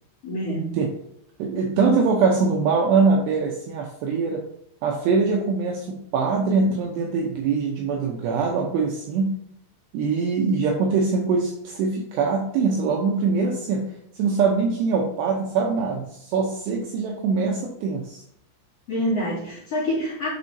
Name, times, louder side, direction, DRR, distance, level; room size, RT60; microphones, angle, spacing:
voice 1, 0.2-0.8 6.6-6.7 18.9-20.3, equal, 40° left, -7 dB, 2.6 m, -26 dB
voice 2, 1.4-4.4 4.8-9.3 9.9-13.9 14.2-18.2, right 4 dB, 80° right, 0 dB, 2.5 m, -23 dB
11.0 x 4.9 x 2.7 m, 0.73 s
omnidirectional pair, 5.7 m